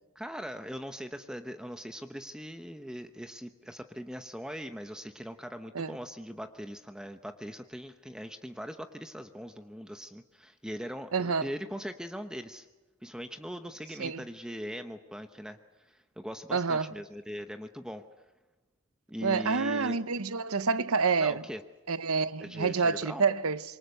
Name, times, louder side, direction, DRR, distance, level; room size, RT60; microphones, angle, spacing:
voice 1, 0.1-12.7 13.0-18.0 19.1-20.0 21.2-21.6 22.4-23.2, equal, 5° right, 0.9 m, -40 dB
voice 2, 11.1-11.5 14.0-14.2 16.5-16.9 19.2-21.4 21.9-23.6, right 5 dB, 90° right, 0.9 m, -28 dB
26.5 x 24.0 x 6.7 m
head